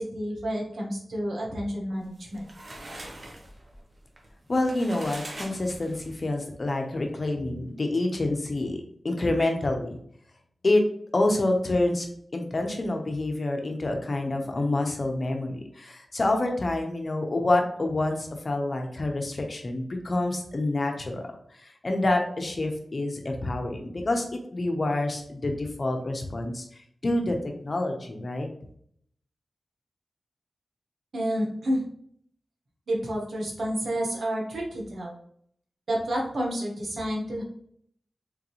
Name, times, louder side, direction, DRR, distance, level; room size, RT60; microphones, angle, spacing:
voice 1, 0.0-2.6 7.4-7.6 8.6-8.8 31.1-31.8 32.9-35.2 35.9-37.4, equal, 75° right, -2 dB, 1.4 m, -30 dB
sound 1, 2.0-6.2, right 1 dB, 45° right, 1.0 m, -43 dB
voice 2, 4.5-10.0 10.6-10.8 11.1-12.1 12.3-21.2 21.6-27.4 27.6-28.5, left 2 dB, 50° left, 3 dB, 0.9 m, -27 dB
3.8 x 3.7 x 3.1 m, 0.65 s
cardioid pair, 50°, 0 cm